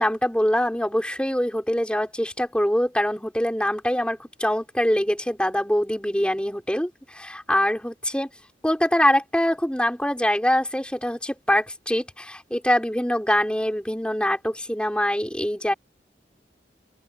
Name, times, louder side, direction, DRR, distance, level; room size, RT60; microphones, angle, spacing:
voice 1, 0.0-8.3 8.6-15.7, left 1 dB, 5° left, 5.9 m, -24 dB
open air
head